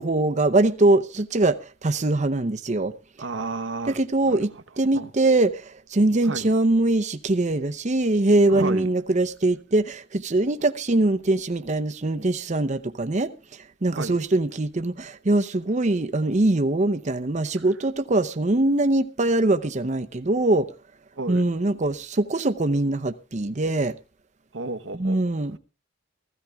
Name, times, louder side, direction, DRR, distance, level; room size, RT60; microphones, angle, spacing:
voice 1, 0.0-2.9 3.9-4.5 4.8-13.3 13.8-20.7 21.3-23.9 24.9-25.6, right 2 dB, 40° right, 0.7 m, -22 dB
voice 2, 3.2-4.0 4.3-4.4 4.9-5.1 6.2-6.5 8.5-8.9 14.0-14.2 17.6-17.7 21.2-21.4 24.5-25.2, right 3 dB, 80° right, 1.1 m, -32 dB
16.0 x 15.0 x 3.5 m
head